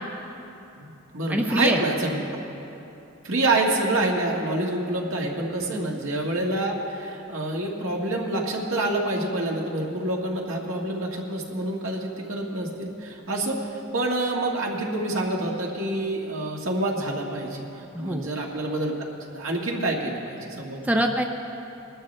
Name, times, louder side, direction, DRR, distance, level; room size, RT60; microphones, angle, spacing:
voice 1, 0.8-2.2 3.2-13.6 13.9-17.7 18.0-18.9 19.3-20.9, right 2 dB, 75° right, -1 dB, 1.7 m, -27 dB
voice 2, 1.3-1.8 5.7-5.9 17.9-18.3 20.8-21.2, right 1 dB, 5° right, 3 dB, 0.5 m, -24 dB
21.0 x 12.0 x 3.3 m, 2.9 s
head